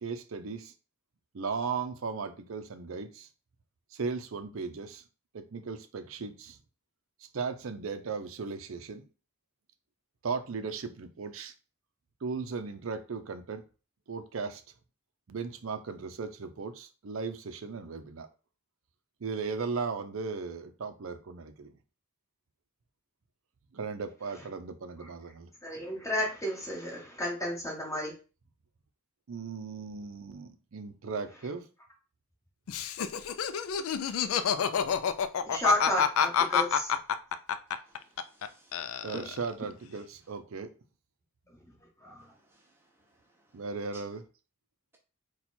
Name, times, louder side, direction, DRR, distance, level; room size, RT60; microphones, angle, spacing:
voice 1, 0.0-0.7 1.3-3.3 3.9-5.0 5.3-6.6 7.3-9.1 10.2-11.5 12.2-13.6 14.1-14.6 15.3-18.3 19.2-21.8 23.7-25.5 29.3-31.7 39.0-40.7 43.5-44.2, right 5 dB, 70° right, 0.5 m, -37 dB
voice 2, 25.6-28.1 35.4-36.9 41.6-41.7 42.0-42.3, left 1 dB, 15° left, 1.7 m, -32 dB
Laughter, 32.7-38.5 38.7-39.5, left 8 dB, 75° left, 0.4 m, -28 dB
voice 3, 37.9-39.2 42.5-42.7 43.9-44.0, right 2 dB, 10° right, 0.6 m, -47 dB
4.3 x 2.3 x 4.2 m
head